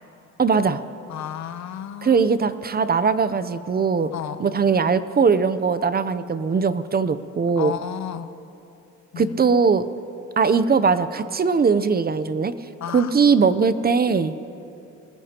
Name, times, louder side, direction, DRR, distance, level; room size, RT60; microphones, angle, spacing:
voice 1, 0.4-0.8 2.0-4.1 4.4-7.8 9.2-9.8 10.4-12.5 12.9-14.3, right 5 dB, 30° right, 13 dB, 0.6 m, -20 dB
voice 2, 1.1-2.2 4.1-4.4 7.6-8.3 9.1-9.5 12.8-13.1, left 9 dB, 65° left, 11 dB, 0.8 m, -32 dB
29.0 x 15.5 x 2.9 m, 2.8 s
cardioid pair, 90°, 30 cm